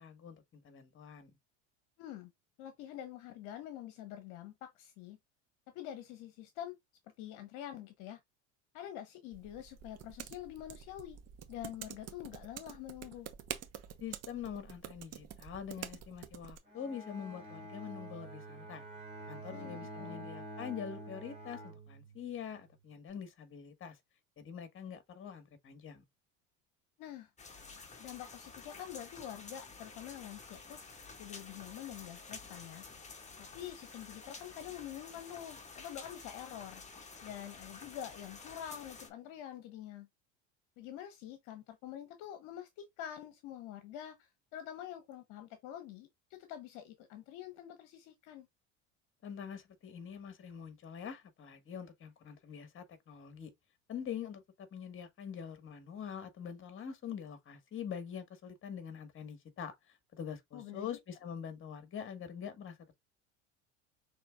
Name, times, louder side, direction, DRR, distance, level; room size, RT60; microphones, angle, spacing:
voice 1, 0.0-1.3 14.0-18.8 19.3-24.0 24.4-26.0 49.2-53.5 53.9-63.0, left 8 dB, 35° left, 1.6 m, -44 dB
voice 2, 2.0-2.3 2.6-5.2 5.7-6.7 7.2-8.2 8.7-11.2 11.5-13.3 19.5-20.3 27.0-27.3 28.0-30.8 31.2-32.8 33.4-36.8 37.2-40.1 40.8-48.5 60.5-61.0, left 11 dB, 65° left, 1.0 m, -46 dB
sound 1, 9.3-16.6, right 10 dB, 45° right, 1.0 m, -48 dB
Bowed string instrument, 16.6-22.4, right 1 dB, 15° right, 3.1 m, -47 dB
sound 2, 27.4-39.1, left 4 dB, 20° left, 1.6 m, -51 dB
6.2 x 3.4 x 2.4 m
hypercardioid pair, 85°, 35 cm